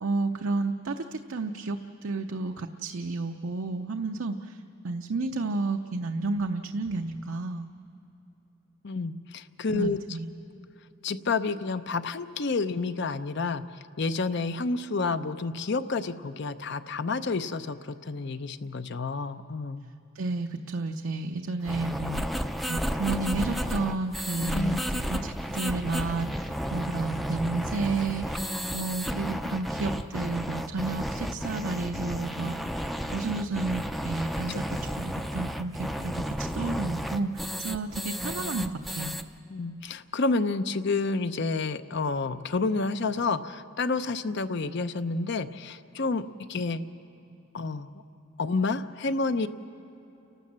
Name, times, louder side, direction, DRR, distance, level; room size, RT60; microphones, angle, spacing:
voice 1, 0.0-7.7 9.7-10.3 20.1-39.1, right 3 dB, 75° right, 5 dB, 0.6 m, -31 dB
voice 2, 8.8-10.0 11.0-13.6 14.0-19.8 24.5-24.8 34.5-34.6 39.5-46.9 47.5-48.0 48.4-49.5, left 3 dB, 55° left, 12 dB, 0.6 m, -29 dB
sound 1, 21.6-39.2, equal, ahead, 0.4 m, -33 dB
29.5 x 12.5 x 7.4 m, 3.0 s
head